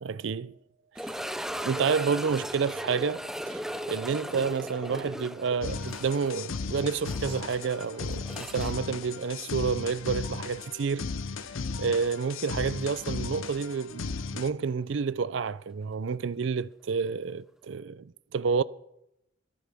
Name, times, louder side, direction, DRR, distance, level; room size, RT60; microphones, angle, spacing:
voice 1, 0.0-0.6 1.0-1.2 1.6-3.6 3.9-11.0 11.8-18.6, right 5 dB, 70° right, 0.4 m, -29 dB
sound 1, 0.9-9.9 10.1-10.2 10.8-10.9 13.5-13.6, equal, ahead, 0.5 m, -38 dB
sound 2, 5.6-14.5, left 4 dB, 90° left, 0.7 m, -36 dB
27.0 x 9.7 x 3.5 m
head